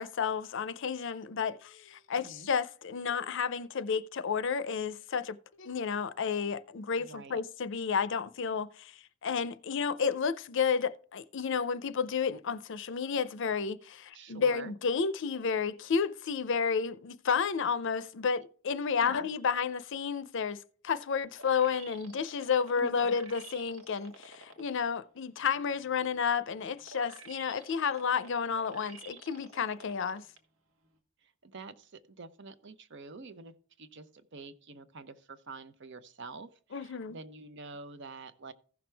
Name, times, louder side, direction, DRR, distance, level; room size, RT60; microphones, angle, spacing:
voice 1, 0.0-30.2 36.7-37.2, left 6 dB, 60° left, 0.6 m, -31 dB
voice 2, 7.0-7.4 14.1-14.7 19.0-19.3 22.8-22.9 31.2-34.1 34.3-38.5, right 3 dB, 60° right, 0.8 m, -47 dB
sound 1, 21.4-24.8 25.3-30.4 30.8-30.9, right 4 dB, 85° right, 1.5 m, -51 dB
15.5 x 6.1 x 3.4 m
head